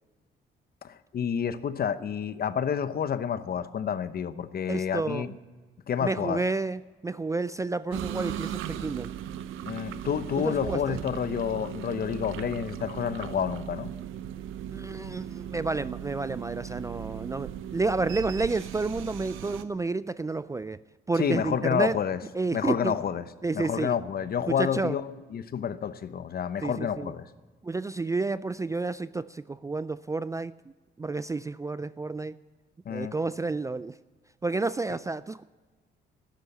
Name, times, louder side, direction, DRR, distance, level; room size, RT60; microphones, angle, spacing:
voice 1, 0.8-5.3 5.9-6.4 9.6-13.9 21.1-22.2 22.5-23.2 23.5-27.3 32.8-33.1, left 8 dB, 50° left, 13 dB, 0.8 m, -29 dB
voice 2, 4.7-5.3 6.0-9.1 10.4-11.0 14.7-20.8 21.1-22.0 22.3-22.9 23.4-24.0 24.5-24.9 26.6-27.1 27.6-30.5 31.0-32.4 32.9-34.0 34.4-35.4, right 3 dB, 15° right, 16 dB, 0.3 m, -30 dB
sound 1, 7.9-19.6, right 10 dB, 90° right, 0.7 m, -37 dB
12.0 x 10.5 x 8.3 m, 1.3 s
cardioid pair, 90°, 20 cm